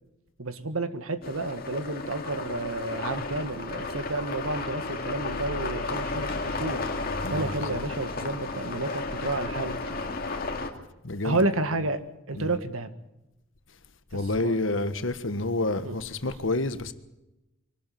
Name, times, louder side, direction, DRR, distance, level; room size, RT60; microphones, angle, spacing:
voice 1, 0.4-6.8 7.3-9.8 11.2-12.9 14.1-14.5 15.8-16.0 16.2-16.4, right 2 dB, 80° right, 1.7 m, -31 dB
sound 1, 1.2-10.7, left 3 dB, 45° left, 2.3 m, -33 dB
voice 2, 7.2-7.8 11.0-11.8 12.3-12.6 14.1-16.9, left 2 dB, 65° left, 1.4 m, -29 dB
24.5 x 12.5 x 9.2 m
head